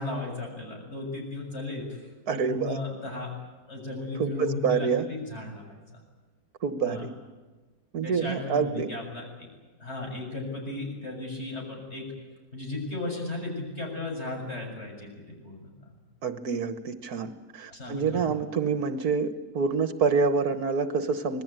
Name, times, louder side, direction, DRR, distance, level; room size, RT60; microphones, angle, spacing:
voice 1, 0.0-3.3 3.7-6.0 6.8-7.1 8.0-9.5 9.8-12.1 12.5-15.9 17.7-18.3, left 2 dB, 40° left, 1 dB, 7.4 m, -35 dB
voice 2, 2.3-2.8 4.2-5.1 6.6-7.1 7.9-8.9 16.2-21.4, right 5 dB, 65° right, 10 dB, 1.6 m, -27 dB
26.0 x 20.0 x 9.0 m, 1.3 s
omnidirectional pair, 1.8 m